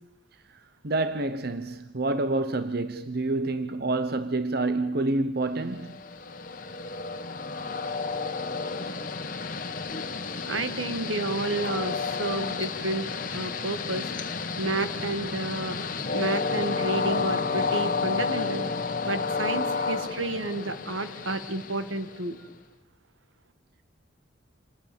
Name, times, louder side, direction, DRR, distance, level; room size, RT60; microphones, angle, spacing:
voice 1, 0.8-6.0, right 2 dB, 50° right, 0.9 m, -28 dB
Train, 5.7-22.5, left 4 dB, 45° left, 1.4 m, -31 dB
voice 2, 10.5-13.1 13.3-14.1 14.6-15.8 16.1-18.7 19.0-22.4, right 2 dB, 80° right, 1.8 m, -31 dB
27.5 x 20.0 x 7.0 m
head